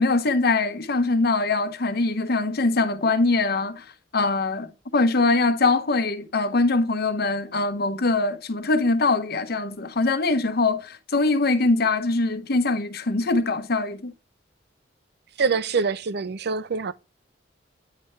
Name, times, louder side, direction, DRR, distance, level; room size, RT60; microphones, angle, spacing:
voice 1, 0.0-3.9 4.1-14.1, left 3 dB, 55° left, 0.8 m, -23 dB
voice 2, 15.4-16.9, right 5 dB, 60° right, 0.5 m, -25 dB
9.7 x 3.3 x 3.1 m
head